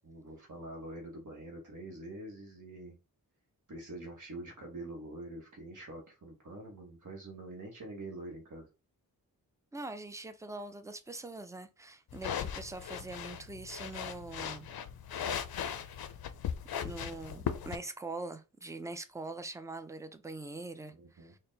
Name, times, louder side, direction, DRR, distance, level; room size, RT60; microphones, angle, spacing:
voice 1, 0.0-3.0 3.7-8.7 20.9-21.3, right 2 dB, 55° right, 1.1 m, -45 dB
voice 2, 9.7-14.7 16.8-20.9 21.2-21.4, right 2 dB, 10° right, 0.4 m, -43 dB
sound 1, 12.1-17.8, left 8 dB, 75° left, 0.5 m, -38 dB
4.3 x 2.1 x 3.8 m
wide cardioid pair, 95°, 37 cm